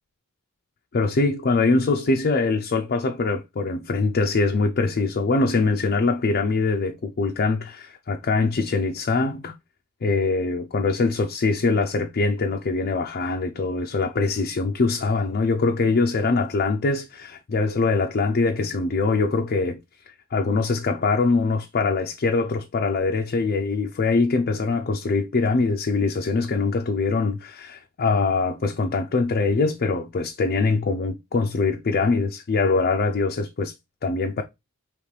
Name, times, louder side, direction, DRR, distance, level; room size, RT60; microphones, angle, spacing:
voice 1, 0.9-9.5 10.0-19.8 20.3-33.7 34.0-34.4, left 3 dB, 45° left, 0.4 m, -23 dB
5.1 x 3.1 x 3.2 m
head